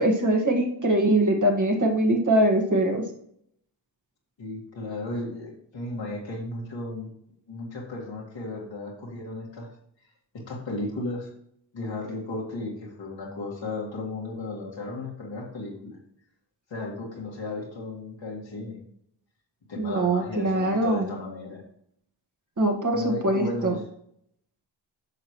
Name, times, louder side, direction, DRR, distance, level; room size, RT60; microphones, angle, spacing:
voice 1, 0.0-3.0 19.8-21.1 22.6-23.8, right 1 dB, 40° right, 2 dB, 1.8 m, -22 dB
voice 2, 4.4-7.1 7.5-9.7 10.3-11.3 11.7-16.0 16.7-18.8 19.7-21.6 22.9-23.8, left 2 dB, 80° left, -3 dB, 2.1 m, -35 dB
8.8 x 6.0 x 3.1 m, 0.71 s
cardioid pair, 50°, 44 cm